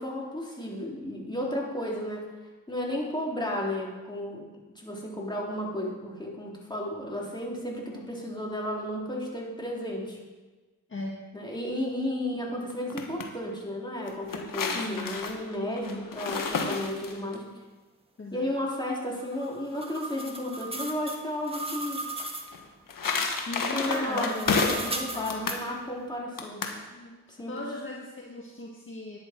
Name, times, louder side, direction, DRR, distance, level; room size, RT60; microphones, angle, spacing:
voice 1, 0.0-2.2 2.7-4.5 4.8-10.2 11.3-17.5 18.3-22.0 23.7-26.7 27.3-27.5, left 1 dB, 10° left, -3 dB, 3.6 m, -33 dB
voice 2, 10.9-11.3 14.7-15.2 15.8-16.1 18.2-18.4 23.5-24.4 25.1-25.4 26.9-27.2 27.5-29.2, left 2 dB, 35° left, -1 dB, 1.7 m, -37 dB
sound 1, 12.7-13.3 14.1-17.4 22.5-25.0 25.3-25.6 26.4-26.8, left 4 dB, 65° left, 1.7 m, -30 dB
sound 2, 19.2-22.5 23.9-25.6, right 2 dB, 15° right, 1.7 m, -37 dB
11.0 x 10.5 x 4.6 m, 1.3 s
cardioid pair, 65°, 36 cm